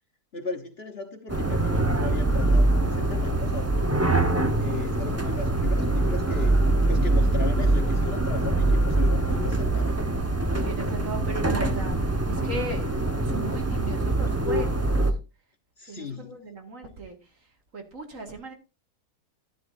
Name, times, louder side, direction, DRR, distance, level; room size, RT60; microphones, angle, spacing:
voice 1, 0.3-4.3 4.6-6.6 6.9-9.9 15.8-16.4, left 4 dB, 40° left, 6 dB, 1.4 m, -36 dB
sound 1, 1.3-15.1, right 2 dB, 10° right, 0.8 m, -24 dB
voice 2, 10.6-13.0 13.2-15.1 15.9-17.2 17.7-18.5, right 2 dB, 55° right, 4 dB, 2.5 m, -36 dB
12.0 x 11.5 x 2.7 m, 0.29 s
omnidirectional pair, 1.7 m